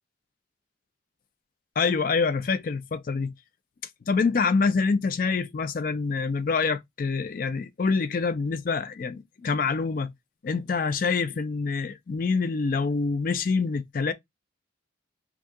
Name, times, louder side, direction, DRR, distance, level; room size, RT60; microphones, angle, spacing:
voice 1, 1.8-3.3 4.1-10.1 10.4-14.1, left 4 dB, 45° left, 0.4 m, -26 dB
2.7 x 2.4 x 3.5 m
head